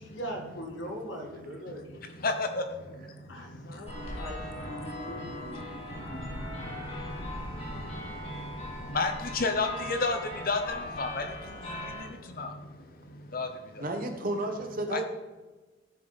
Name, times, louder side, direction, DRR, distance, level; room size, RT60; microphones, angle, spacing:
voice 1, 0.0-2.0 3.3-5.6, equal, 65° left, 1 dB, 2.1 m, -41 dB
voice 2, 1.7-13.9 14.9-15.0, left 3 dB, 45° left, 7 dB, 0.9 m, -35 dB
sound 1, 3.9-12.1, left 1 dB, 30° left, 2.6 m, -40 dB
voice 3, 13.8-15.0, right 2 dB, 45° right, 5 dB, 1.2 m, -32 dB
14.0 x 6.7 x 4.2 m, 1.2 s
head